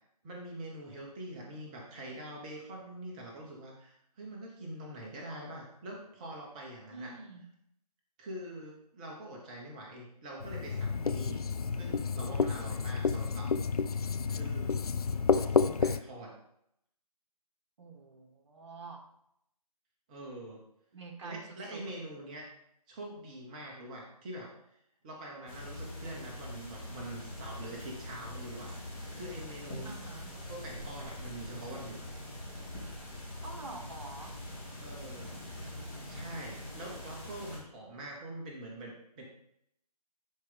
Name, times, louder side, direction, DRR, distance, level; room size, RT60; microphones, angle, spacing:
voice 1, 0.2-7.1 8.2-11.4 11.8-13.6 14.3-14.8 15.3-16.3 20.1-20.6 21.2-22.5 22.9-24.5 25.0-30.0 30.3-32.0 34.8-35.3 36.1-39.2, right 1 dB, 10° right, -1 dB, 0.8 m, -44 dB
voice 2, 6.9-7.4 17.8-19.0 20.9-21.9 29.8-30.3 33.4-34.4, right 3 dB, 45° right, 2 dB, 1.5 m, -46 dB
Writing, 10.4-16.0, left 5 dB, 65° left, 0.4 m, -30 dB
sound 1, 25.5-37.6, left 1 dB, 15° left, 1.9 m, -43 dB
10.5 x 4.5 x 3.8 m, 0.74 s
figure-of-eight pair, 155°, 21 cm